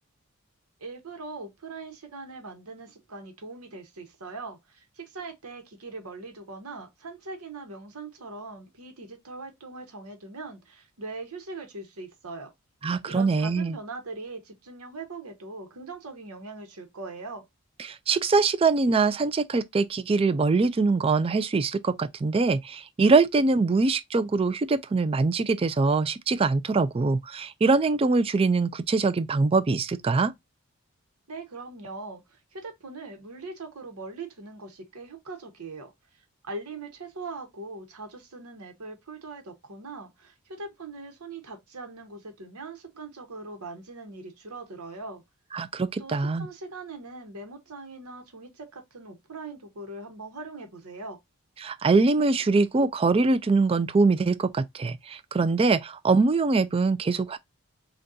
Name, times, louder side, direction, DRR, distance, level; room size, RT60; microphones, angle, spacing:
voice 1, 0.8-12.5 13.0-17.4 31.3-35.9 36.4-45.2 46.0-51.2, right 3 dB, 85° right, 1.0 m, -41 dB
voice 2, 12.8-13.8 18.1-30.3 45.5-46.5 51.6-57.4, right 3 dB, 25° right, 0.3 m, -23 dB
6.2 x 2.3 x 2.5 m
head